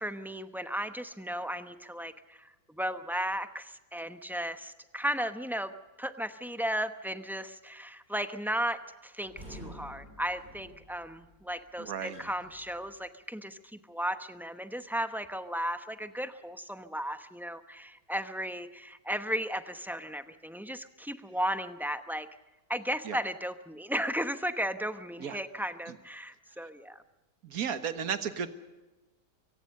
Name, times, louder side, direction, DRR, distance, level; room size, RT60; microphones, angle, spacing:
voice 1, 0.0-22.3 22.7-27.0, equal, ahead, 10 dB, 0.5 m, -35 dB
sound 1, 9.2-13.1, equal, 30° right, 5.5 m, -50 dB
voice 2, 11.8-12.3 23.0-23.2 25.2-25.4 25.9-26.0 27.4-28.5, right 7 dB, 60° right, 11 dB, 1.7 m, -34 dB
23.5 x 18.0 x 6.6 m, 1.1 s
omnidirectional pair, 1.8 m